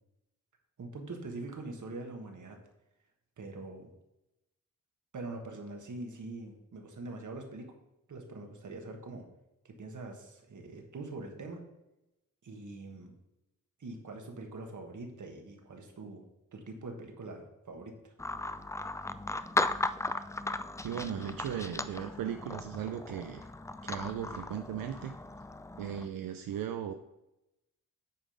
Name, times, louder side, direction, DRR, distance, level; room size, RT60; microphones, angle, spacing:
voice 1, 0.8-2.6 3.4-3.9 5.1-7.7 8.1-9.3 9.6-11.6 12.4-13.1 13.8-16.2 16.5-18.1, right 2 dB, 60° right, 3 dB, 1.6 m, -43 dB
sound 1, 18.2-26.1, left 2 dB, 10° left, 0.3 m, -36 dB
voice 2, 20.8-23.5 23.8-25.1 25.8-26.9, right 9 dB, 90° right, 7 dB, 0.5 m, -37 dB
8.6 x 3.8 x 5.0 m, 0.92 s
cardioid pair, 60°, 33 cm